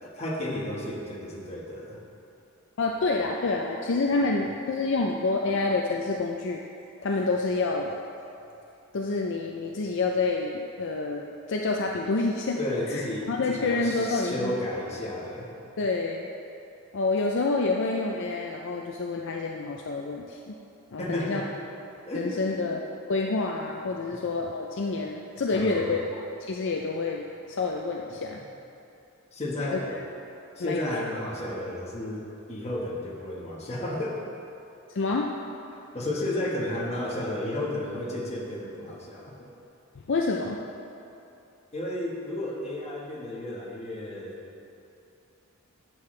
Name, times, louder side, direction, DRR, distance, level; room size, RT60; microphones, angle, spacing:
voice 1, 0.0-2.0 12.6-15.5 21.0-21.5 22.0-22.4 24.1-24.2 25.5-25.9 28.4-28.5 29.3-30.1 30.6-34.3 35.7-39.5 41.7-44.4, left 1 dB, 30° left, -3 dB, 1.4 m, -33 dB
voice 2, 2.8-6.6 7.0-7.9 8.9-12.6 12.9-13.0 13.3-14.6 15.8-16.3 16.9-20.6 20.9-21.4 22.1-22.8 23.1-26.0 26.4-28.4 29.7-30.0 30.6-30.9 34.9-35.3 40.1-40.6, left 3 dB, 60° left, 0 dB, 0.5 m, -28 dB
11.0 x 7.7 x 3.3 m, 2.8 s
head